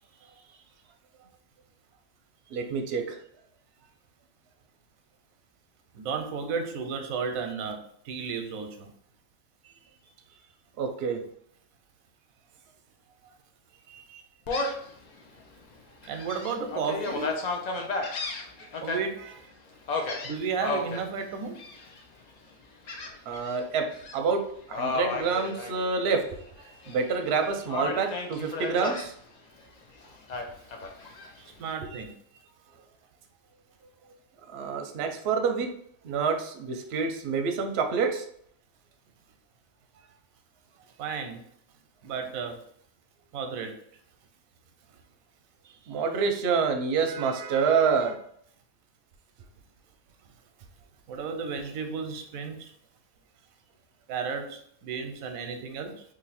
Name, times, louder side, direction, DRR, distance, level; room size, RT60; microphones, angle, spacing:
voice 1, 2.5-3.2 10.8-11.2 13.9-14.2 20.0-20.1 23.3-23.8 24.1-24.4 24.7-26.4 26.9-29.1 34.5-35.7 36.0-38.2 45.9-48.2, right 5 dB, 60° right, 4 dB, 0.7 m, -27 dB
voice 2, 5.9-8.9 16.0-17.4 18.8-19.3 20.2-21.6 31.6-32.1 41.0-41.4 42.0-42.6 43.3-43.7 51.1-52.7 54.1-56.0, right 5 dB, 90° right, 6 dB, 1.0 m, -33 dB
Gull seagull, 14.5-14.9 15.4-15.5 16.0-19.0 19.9-21.0 21.6-22.0 22.9-23.6 23.9-24.2 24.7-26.3 26.6-27.3 27.7-29.1 30.3-31.3, left 3 dB, 85° left, 0.3 m, -33 dB
3.0 x 2.6 x 4.0 m, 0.65 s
omnidirectional pair, 1.4 m